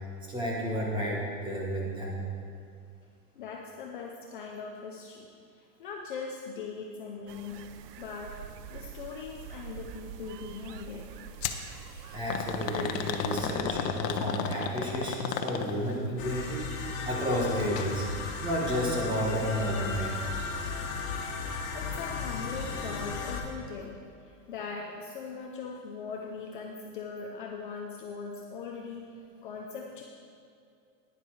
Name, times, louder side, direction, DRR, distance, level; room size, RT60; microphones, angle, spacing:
voice 1, 0.3-2.2 12.1-20.2, equal, 10° right, -3 dB, 1.3 m, -31 dB
voice 2, 3.4-5.3 5.6-8.4 8.7-11.1 21.7-30.0, left 5 dB, 35° left, 0 dB, 0.6 m, -40 dB
sound 1, 7.3-13.6, right 8 dB, 75° right, 0.7 m, -46 dB
sound 2, 11.4-11.6 12.3-16.0 17.6-17.9 18.3-18.4 19.2-19.3, left 7 dB, 80° left, 1.1 m, -33 dB
sound 3, 16.2-23.4, left 4 dB, 55° left, 1.6 m, -35 dB
10.5 x 10.0 x 4.7 m, 2.4 s
supercardioid pair, 175°, 48 cm